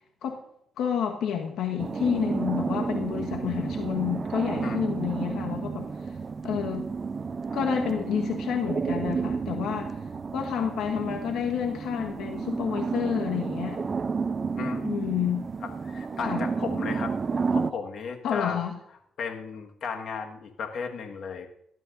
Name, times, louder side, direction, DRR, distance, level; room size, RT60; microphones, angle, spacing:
voice 1, 0.8-5.9 6.4-6.9 7.5-9.9 10.3-13.8 14.8-15.4 16.2-16.5 18.2-18.7, left 8 dB, 80° left, 2 dB, 1.4 m, -29 dB
sound 1, 1.8-17.7, right 5 dB, 35° right, 0.5 m, -31 dB
voice 2, 15.6-17.1 17.5-18.6 19.2-21.5, left 6 dB, 65° left, 3 dB, 1.6 m, -35 dB
18.5 x 12.5 x 2.7 m, 0.72 s
cardioid pair, 90°, 0 cm